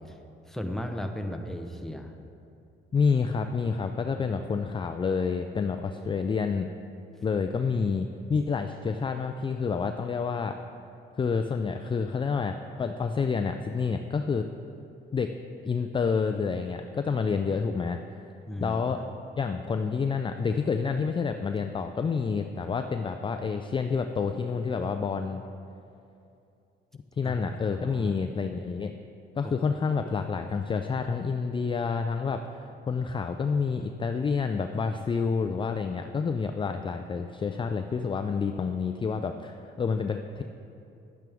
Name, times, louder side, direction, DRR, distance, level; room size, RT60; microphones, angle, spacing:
voice 1, 0.5-2.1 18.5-19.1 27.2-27.4 27.7-28.2 29.4-29.5, equal, ahead, 4 dB, 0.8 m, -36 dB
voice 2, 2.9-6.7 7.2-10.6 11.2-14.4 15.1-15.3 15.6-18.0 18.6-19.0 19.4-25.4 27.2-28.9 29.4-32.6 32.9-40.4, left 5 dB, 25° left, 6 dB, 0.4 m, -28 dB
10.5 x 9.2 x 3.5 m, 2.7 s
cardioid pair, 90°, 20 cm